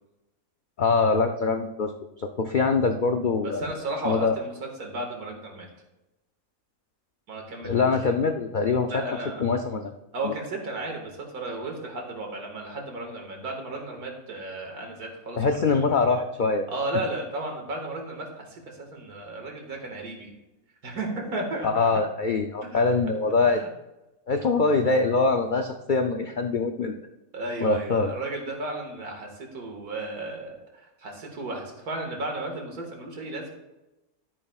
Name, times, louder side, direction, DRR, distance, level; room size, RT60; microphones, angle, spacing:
voice 1, 0.8-1.9 2.2-3.6 4.0-4.4 7.6-9.0 9.4-9.9 10.2-10.3 15.4-16.7 21.6-23.6 24.3-27.0 27.6-28.1, left 4 dB, 70° left, 5 dB, 0.4 m, -23 dB
voice 2, 3.4-5.7 7.3-7.9 8.9-9.5 10.1-15.6 16.7-20.3 20.8-21.9 22.6-22.9 23.4-23.7 27.3-33.5, right 2 dB, 90° right, 1 dB, 2.3 m, -34 dB
12.0 x 9.7 x 2.4 m, 0.99 s
omnidirectional pair, 1.6 m